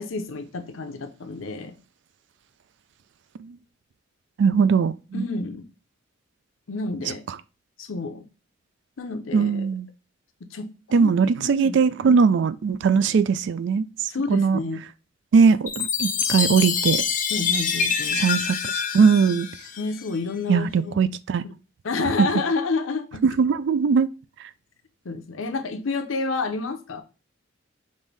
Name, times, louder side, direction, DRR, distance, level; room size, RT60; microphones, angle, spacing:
voice 1, 0.0-1.8 5.1-5.7 6.7-7.2 7.8-8.2 9.0-9.7 10.5-12.2 14.1-14.8 17.3-18.2 19.8-20.9 21.4-21.5 21.8-23.2 25.0-27.0, left 3 dB, 85° left, 0.7 m, -29 dB
voice 2, 4.4-5.2 9.3-9.9 10.9-13.9 14.3-14.6 15.3-17.0 18.2-18.4 18.7-19.5 20.5-21.4 23.2-24.1, right 5 dB, 60° right, 0.3 m, -20 dB
Chime, 15.7-20.2, left 6 dB, 40° left, 0.6 m, -26 dB
5.4 x 2.6 x 3.3 m
head